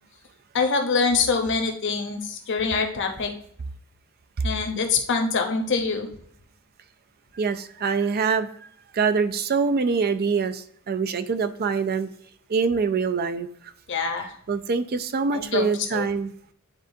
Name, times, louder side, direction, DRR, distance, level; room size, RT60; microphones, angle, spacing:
voice 1, 0.5-3.3 4.4-6.1 13.9-14.3 15.3-15.6 15.9-16.1, left 4 dB, 55° left, 4 dB, 0.9 m, -24 dB
voice 2, 7.3-8.5 8.9-12.1 12.5-13.5 14.5-16.3, right 5 dB, 45° right, 11 dB, 0.4 m, -24 dB
9.7 x 3.7 x 2.7 m, 0.64 s
head